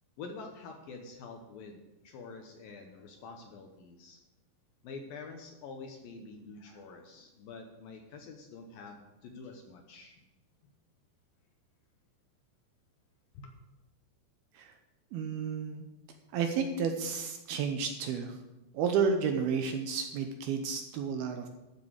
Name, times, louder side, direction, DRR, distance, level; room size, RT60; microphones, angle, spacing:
voice 1, 0.2-4.2 4.8-10.2 13.3-13.5, left 4 dB, 70° left, 3 dB, 2.4 m, -47 dB
voice 2, 15.1-15.8 16.3-18.4 18.7-21.5, right 6 dB, 75° right, 5 dB, 2.5 m, -31 dB
12.5 x 6.7 x 6.4 m, 0.98 s
omnidirectional pair, 5.0 m